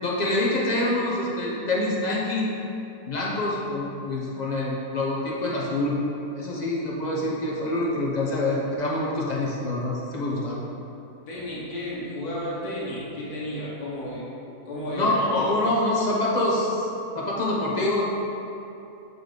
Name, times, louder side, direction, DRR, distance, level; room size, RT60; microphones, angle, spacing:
voice 1, 0.0-2.5 3.0-6.0 6.3-10.6 15.0-16.9 17.1-18.0, left 2 dB, 40° left, -4 dB, 0.7 m, -26 dB
voice 2, 11.3-14.3 14.6-15.5, left 1 dB, 85° left, -6 dB, 1.6 m, -32 dB
7.6 x 3.9 x 3.4 m, 2.8 s
omnidirectional pair, 1.6 m